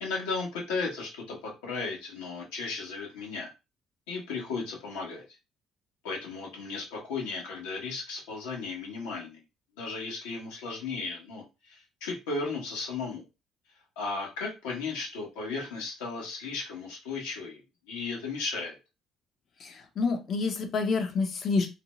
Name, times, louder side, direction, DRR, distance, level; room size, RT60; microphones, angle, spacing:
voice 1, 0.0-3.5 4.1-5.2 6.0-9.4 9.8-13.2 14.0-17.6 17.9-18.8, left 4 dB, 85° left, -1 dB, 0.9 m, -35 dB
voice 2, 19.6-21.7, left 4 dB, 55° left, 6 dB, 0.6 m, -28 dB
2.5 x 2.2 x 3.0 m, 0.27 s
hypercardioid pair, 65°, 0 cm